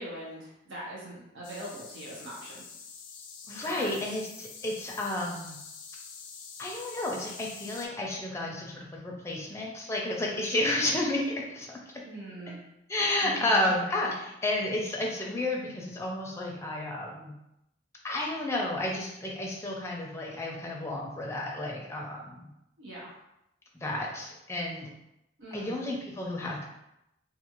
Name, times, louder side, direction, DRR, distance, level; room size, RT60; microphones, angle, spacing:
voice 1, 0.0-2.6 3.6-4.2 12.1-12.6 13.2-13.7 22.8-23.1 25.4-25.8, right 1 dB, 85° right, -5 dB, 0.8 m, -42 dB
sound 1, 1.4-7.9, left 5 dB, 80° left, 0.4 m, -46 dB
voice 2, 3.5-5.6 6.6-11.8 12.9-17.3 18.0-22.5 23.7-24.9 25.5-26.6, left 1 dB, 15° left, -2 dB, 0.4 m, -31 dB
2.4 x 2.4 x 3.0 m, 0.85 s
head